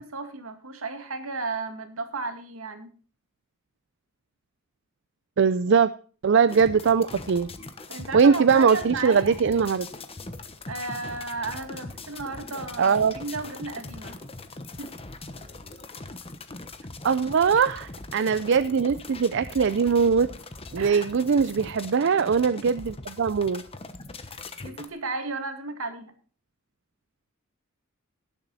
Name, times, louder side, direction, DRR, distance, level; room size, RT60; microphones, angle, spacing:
voice 1, 0.0-2.9 7.9-9.4 10.7-14.2 14.8-14.9 20.8-21.2 24.3-24.4 24.6-26.1, right 3 dB, 80° right, 6 dB, 2.3 m, -34 dB
voice 2, 5.4-5.9 6.2-7.5 8.1-9.9 12.8-13.1 17.0-20.3 20.7-23.6, right 6 dB, 60° right, 14 dB, 0.5 m, -21 dB
sound 1, 6.5-24.9, left 3 dB, 30° left, 1.1 m, -41 dB
18.0 x 7.3 x 4.1 m, 0.40 s
head